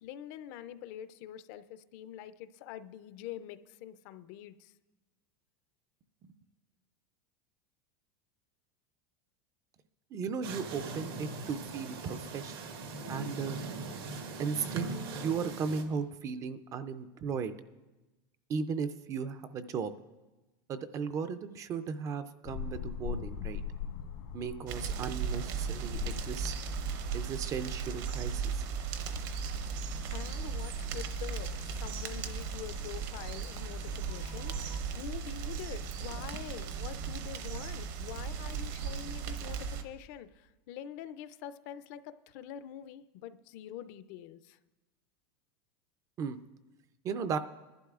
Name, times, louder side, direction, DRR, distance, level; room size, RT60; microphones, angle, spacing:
voice 1, 0.0-4.7 30.1-44.6, left 10 dB, 50° left, 13 dB, 0.4 m, -45 dB
voice 2, 10.1-12.5 13.1-13.6 14.4-17.5 18.5-19.9 20.7-23.6 24.3-26.5 27.1-28.4 46.2-46.4 47.0-47.4, right 6 dB, 25° right, 11 dB, 0.4 m, -36 dB
sound 1, 10.4-15.8, right 3 dB, 85° right, 1.5 m, -40 dB
sound 2, 22.4-34.8, left 8 dB, 80° left, 1.5 m, -44 dB
sound 3, 24.7-39.8, right 6 dB, 60° right, 0.9 m, -37 dB
21.5 x 11.5 x 2.4 m, 1.1 s
supercardioid pair, 155°, 12 cm